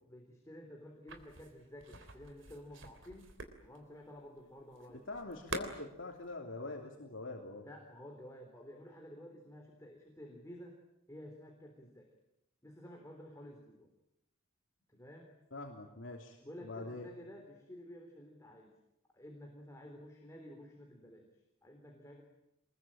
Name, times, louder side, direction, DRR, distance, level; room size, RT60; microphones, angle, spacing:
voice 1, 0.1-3.3 3.6-5.1 7.6-10.8 11.1-12.1 12.6-13.9 14.9-15.4 16.4-18.7 19.1-21.3 21.6-22.2, equal, 15° left, 1 dB, 3.7 m, -52 dB
sound 1, 1.1-6.3, right 3 dB, 65° right, 3.4 m, -47 dB
voice 2, 4.9-7.7 15.5-17.1, left 2 dB, 65° left, 1 dB, 3.2 m, -44 dB
26.5 x 21.5 x 9.0 m, 0.86 s
head